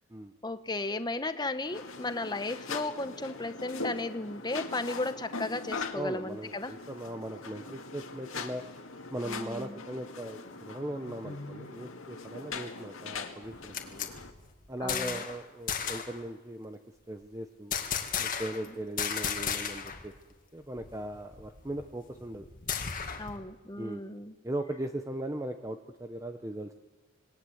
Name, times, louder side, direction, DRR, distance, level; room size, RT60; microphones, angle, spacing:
voice 1, 0.4-6.8 9.2-9.8 14.8-15.2 23.2-24.3, left 2 dB, 20° left, 10 dB, 1.0 m, -35 dB
sound 1, 1.7-14.3, left 4 dB, 65° left, 2.2 m, -41 dB
voice 2, 5.9-8.6 9.1-14.1 14.7-16.8 17.1-17.8 18.2-20.1 20.5-22.5 23.8-24.0 24.4-26.8, right 1 dB, 15° right, 7 dB, 0.8 m, -38 dB
sound 2, 13.4-15.4 15.7-16.2 17.7-18.7 19.0-20.0 20.3-20.4 20.8-23.4, left 7 dB, 40° left, 2.2 m, -34 dB
26.5 x 20.0 x 8.0 m, 1.2 s
head